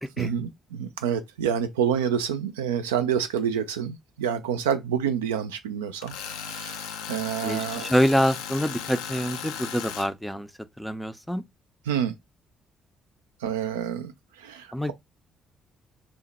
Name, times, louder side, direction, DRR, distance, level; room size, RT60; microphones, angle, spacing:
voice 1, 0.2-6.2 6.4-7.9 11.9-12.2 13.4-14.1 14.4-14.9, right 8 dB, 75° right, 0.3 m, -28 dB
Tools, 6.0-10.1, left 7 dB, 70° left, 0.4 m, -36 dB
voice 2, 7.4-10.5 10.8-11.4 14.7-14.9, equal, ahead, 0.4 m, -26 dB
3.0 x 2.1 x 4.0 m
figure-of-eight pair, 45°, 0 cm